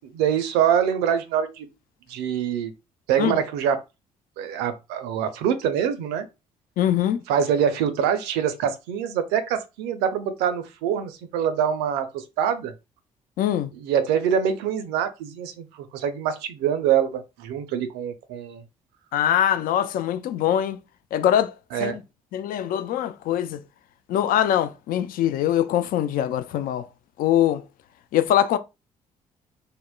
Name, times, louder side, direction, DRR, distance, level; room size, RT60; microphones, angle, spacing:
voice 1, 0.1-1.7 2.1-2.7 3.1-3.8 4.4-6.3 7.3-12.7 13.7-18.6 21.7-22.0, right 8 dB, 65° right, 0.5 m, -24 dB
voice 2, 6.8-7.2 13.4-13.7 19.1-20.8 21.1-21.5 21.8-21.9 22.3-23.6 24.1-26.9 27.2-27.6 28.1-28.6, left 11 dB, 50° left, 0.4 m, -22 dB
3.6 x 2.0 x 2.2 m
figure-of-eight pair, 40°, 18 cm